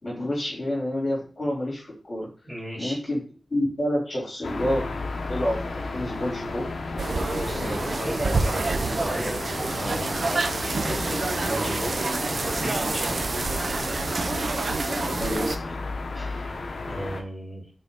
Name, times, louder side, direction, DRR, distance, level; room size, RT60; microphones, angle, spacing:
voice 1, 0.0-2.3 2.8-3.2 3.5-4.9 5.3-6.6 14.9-15.8, left 1 dB, 50° left, -5 dB, 3.5 m, -28 dB
voice 2, 2.4-3.0 7.4-12.0 12.3-13.3 16.1-17.7, equal, 10° right, -5 dB, 3.1 m, -36 dB
sound 1, 4.4-17.2, left 3 dB, 80° left, 0.9 m, -33 dB
sound 2, 7.0-15.6, right 3 dB, 55° right, 0.5 m, -27 dB
6.1 x 4.0 x 3.9 m, 0.39 s
wide cardioid pair, 105°, 0 cm